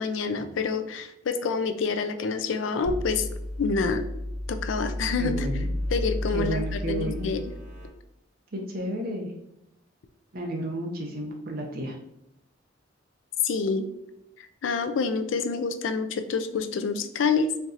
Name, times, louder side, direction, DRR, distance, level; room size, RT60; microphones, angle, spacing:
voice 1, 0.0-3.3 3.6-4.0 4.5-5.5 5.9-7.5 13.4-13.9 14.4-17.5, left 4 dB, 80° left, 9 dB, 0.4 m, -27 dB
sound 1, 2.8-7.9, left 1 dB, 75° right, 1.4 m, -32 dB
voice 2, 5.2-5.7 6.3-7.3 8.5-9.3 10.3-12.0, right 1 dB, 50° right, 1 dB, 0.6 m, -32 dB
4.4 x 2.7 x 2.5 m, 0.82 s
head